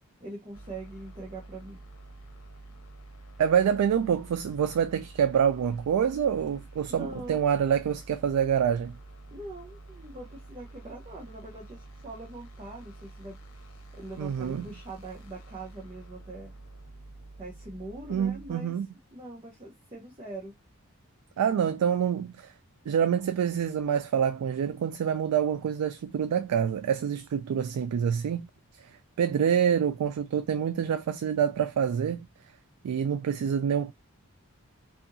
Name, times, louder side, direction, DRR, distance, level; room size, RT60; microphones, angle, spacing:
voice 1, 0.2-1.8 6.9-7.4 9.3-13.4 13.9-16.5 17.4-18.8 19.1-20.5, right 2 dB, 25° right, 0.6 m, -42 dB
sound 1, 0.5-18.5, right 2 dB, 80° left, 1.0 m, -48 dB
voice 2, 3.4-8.9 14.2-14.6 18.1-18.9 21.4-22.5 22.9-28.4 29.2-32.2 32.8-33.9, right 8 dB, 90° right, 0.3 m, -26 dB
2.6 x 2.5 x 2.6 m
head